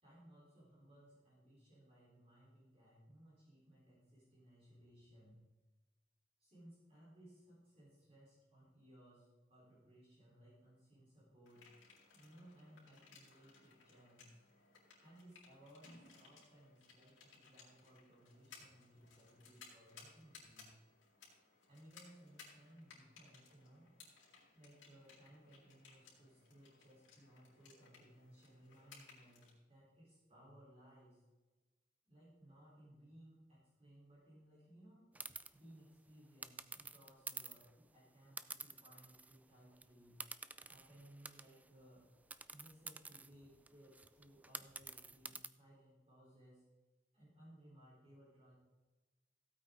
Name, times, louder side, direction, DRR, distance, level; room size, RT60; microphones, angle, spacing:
voice 1, 0.0-5.4 6.4-11.6 12.1-14.4 15.0-20.7 21.7-31.2 32.1-35.0 35.5-40.1 40.6-42.0 42.5-46.6 47.1-48.5, right 1 dB, 30° right, -7 dB, 4.2 m, -62 dB
sound 1, 11.5-29.5, left 5 dB, 80° left, 4.2 m, -63 dB
sound 2, 35.1-35.5 36.4-37.7 38.4-39.4 39.7-39.8 40.2-41.7 42.3-45.5, right 3 dB, 10° right, 0.3 m, -49 dB
16.0 x 8.8 x 3.9 m, 1.2 s
head